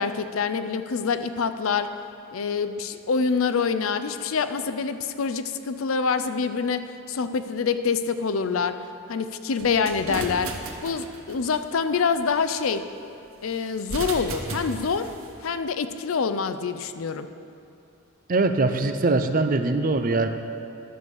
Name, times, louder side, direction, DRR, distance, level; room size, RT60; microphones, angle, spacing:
voice 1, 0.0-1.9 2.3-8.8 9.1-10.5 10.8-12.8 13.4-15.1 15.4-17.3, left 5 dB, 85° left, 11 dB, 0.5 m, -26 dB
sound 1, 9.6-11.6 13.8-15.3, right 2 dB, 80° right, 1.2 m, -34 dB
voice 2, 18.3-20.3, right 3 dB, 40° right, 8 dB, 0.6 m, -22 dB
11.0 x 7.1 x 6.4 m, 2.6 s
head